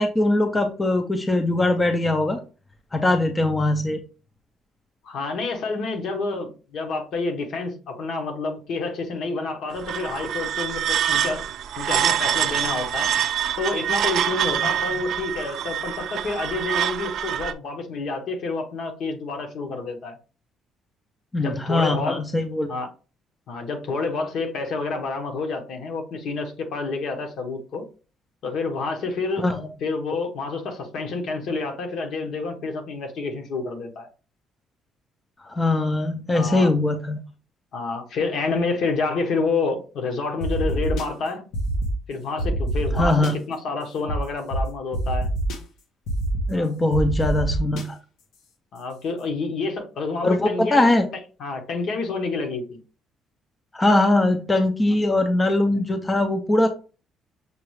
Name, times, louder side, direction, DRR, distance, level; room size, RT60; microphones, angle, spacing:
voice 1, 0.0-2.4 2.9-4.0 21.3-22.7 29.4-29.7 35.4-37.2 42.9-43.3 46.5-48.0 50.2-51.1 53.7-56.7, left 2 dB, 15° left, 0.4 m, -21 dB
voice 2, 5.0-11.4 11.8-13.1 13.6-20.2 21.4-22.2 22.7-22.9 23.5-27.8 28.4-29.5 29.8-34.1 36.3-36.7 37.7-41.4 42.1-43.2 43.5-45.3 46.5-46.7 48.7-50.9 51.4-52.8 55.7-55.8, left 3 dB, 55° left, 0.9 m, -28 dB
sound 1, 9.7-17.5, right 10 dB, 60° right, 0.4 m, -25 dB
sound 2, 40.4-41.0 41.5-41.9 42.4-43.3 44.1-44.2 44.5-44.6 44.9-45.6 46.1-46.4 46.9-47.8, right 1 dB, 85° left, 0.9 m, -26 dB
6.6 x 2.3 x 3.1 m
cardioid pair, 150°, 0 cm